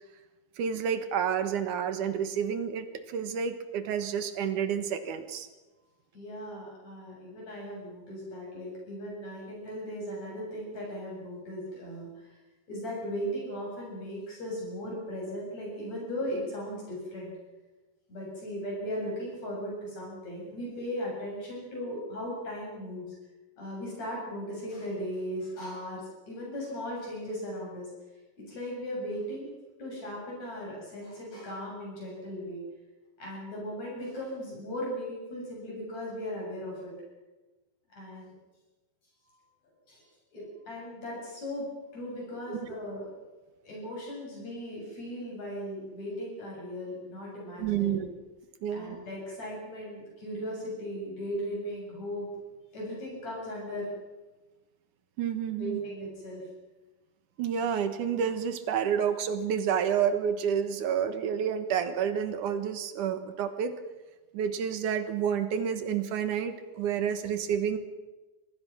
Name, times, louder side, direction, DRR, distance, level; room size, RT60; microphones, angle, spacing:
voice 1, 0.6-5.5 42.5-42.6 47.6-48.1 48.6-49.0 55.2-55.8 57.4-63.7 64.3-67.8, right 8 dB, 70° right, 10 dB, 2.8 m, -29 dB
voice 2, 6.1-12.4 12.7-17.3 18.1-23.1 23.6-27.9 28.5-29.5 29.8-32.6 33.2-36.9 37.9-38.3 39.9-40.0 40.3-43.1 43.6-48.0 48.7-52.3 52.7-53.9 55.6-56.4, equal, 50° left, -3 dB, 8.6 m, -37 dB
25.5 x 18.5 x 6.1 m, 1.2 s
omnidirectional pair, 3.9 m